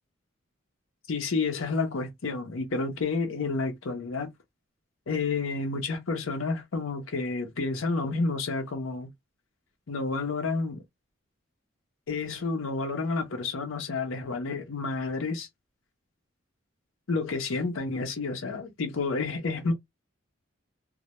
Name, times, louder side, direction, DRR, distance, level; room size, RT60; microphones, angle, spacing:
voice 1, 1.1-4.3 5.1-9.1 9.9-10.8 12.1-15.5 17.1-19.7, left 3 dB, 75° left, 0.6 m, -30 dB
2.2 x 2.1 x 2.8 m
head